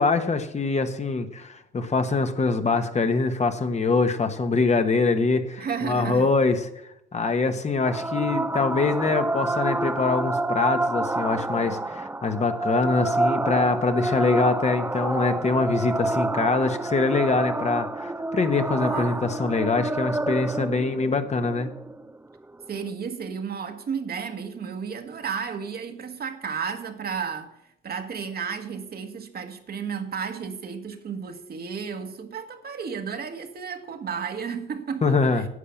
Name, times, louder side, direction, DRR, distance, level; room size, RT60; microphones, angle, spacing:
voice 1, 0.0-6.7 7.1-21.7 35.0-35.5, left 3 dB, 35° left, 1.3 m, -24 dB
voice 2, 5.6-6.3 18.8-19.3 22.7-27.5 27.8-35.5, right 6 dB, 50° right, 1.6 m, -33 dB
sound 1, 7.8-22.8, right 2 dB, 10° right, 0.7 m, -28 dB
11.0 x 8.3 x 7.2 m
cardioid pair, 90°, 20 cm